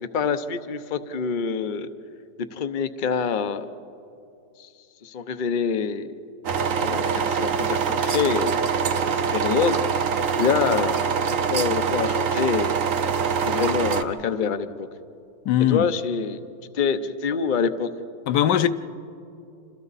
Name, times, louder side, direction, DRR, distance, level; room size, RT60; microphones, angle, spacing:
voice 1, 0.1-1.9 2.5-3.7 4.6-4.7 5.0-6.1 6.8-8.6 9.3-9.8 10.4-11.0 11.5-12.7 13.4-14.9 15.7-16.4 16.7-17.9, left 6 dB, 55° left, 0.5 m, -25 dB
sound 1, 6.4-14.0, right 6 dB, 55° right, 1.1 m, -24 dB
voice 2, 15.4-15.9 18.3-18.7, left 10 dB, 75° left, 1.3 m, -20 dB
28.5 x 26.5 x 4.1 m
omnidirectional pair, 1.9 m